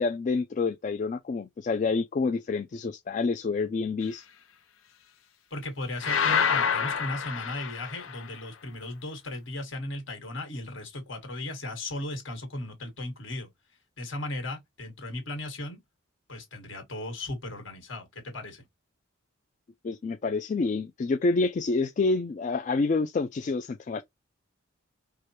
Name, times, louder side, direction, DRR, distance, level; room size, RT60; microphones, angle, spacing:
voice 1, 0.0-4.2 19.8-24.0, left 3 dB, 40° left, 0.3 m, -28 dB
voice 2, 5.5-13.5 14.0-15.8 16.3-18.7, left 1 dB, 70° left, 1.6 m, -36 dB
sound 1, 6.0-8.3, left 7 dB, 85° left, 0.7 m, -27 dB
4.8 x 2.2 x 2.8 m
head